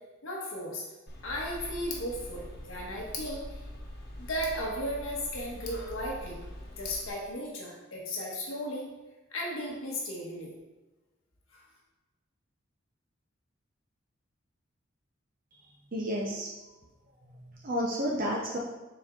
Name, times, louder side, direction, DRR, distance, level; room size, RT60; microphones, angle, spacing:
voice 1, 0.2-0.8 1.2-3.6 4.2-6.4 6.8-8.9 9.3-10.5 11.5-11.6, equal, 85° left, -3 dB, 1.3 m, -35 dB
Tick, 1.1-7.1, left 1 dB, 50° left, 1.2 m, -42 dB
voice 2, 15.5-16.7 17.2-18.6, equal, 45° right, -2 dB, 0.8 m, -33 dB
7.0 x 4.5 x 3.7 m, 1.1 s
head